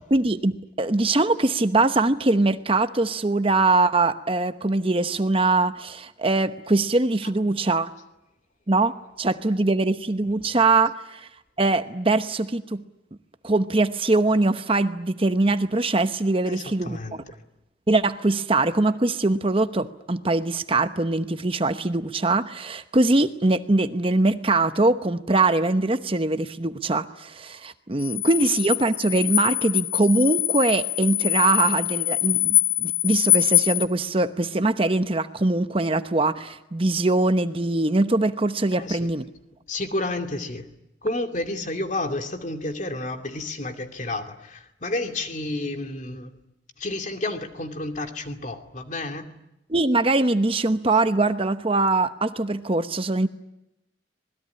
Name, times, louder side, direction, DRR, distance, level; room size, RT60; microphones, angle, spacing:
voice 1, 0.0-7.9 8.7-8.9 9.2-11.3 11.6-12.8 13.4-17.0 17.9-39.2 49.7-53.3, right 2 dB, 30° right, 10 dB, 0.9 m, -22 dB
voice 2, 16.5-17.4 28.4-28.5 38.7-39.1 39.7-40.7 41.0-46.3 46.8-49.3 50.9-51.0, left 2 dB, 40° left, 6 dB, 2.6 m, -31 dB
sound 1, 28.0-33.8, left 17 dB, 85° left, 1.4 m, -24 dB
26.5 x 20.5 x 9.8 m, 0.89 s
head